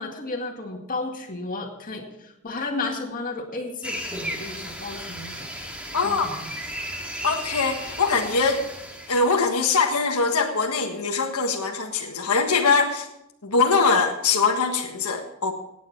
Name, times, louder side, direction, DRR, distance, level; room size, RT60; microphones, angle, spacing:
voice 1, 0.0-5.5 6.0-6.5, left 3 dB, 40° left, 1 dB, 2.1 m, -33 dB
sound 1, 3.8-9.3, equal, 5° right, 2.0 m, -35 dB
voice 2, 5.9-6.3 7.2-8.6 9.1-13.1 13.4-15.5, left 4 dB, 85° left, 3 dB, 1.5 m, -22 dB
17.0 x 9.4 x 4.6 m, 0.83 s
head